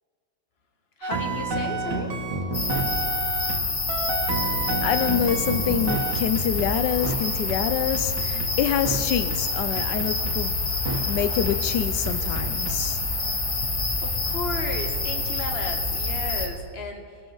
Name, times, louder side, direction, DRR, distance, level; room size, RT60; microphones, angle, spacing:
voice 1, 1.0-2.1 14.0-17.2, left 3 dB, 40° left, 1.5 m, -34 dB
sound 1, 1.0-3.6 3.9-6.7 7.0-7.2 7.5-7.6 7.9-8.5 8.9-9.0 9.3-9.4 9.8-10.3 10.9-11.0 11.5-11.6 12.1-12.8, right 3 dB, 85° right, 2.1 m, -29 dB
sound 2, 2.5-16.5, left 3 dB, 60° left, 2.5 m, -27 dB
voice 2, 4.3-13.2, left 9 dB, 90° left, 1.3 m, -27 dB
22.5 x 12.5 x 4.0 m
omnidirectional pair, 1.8 m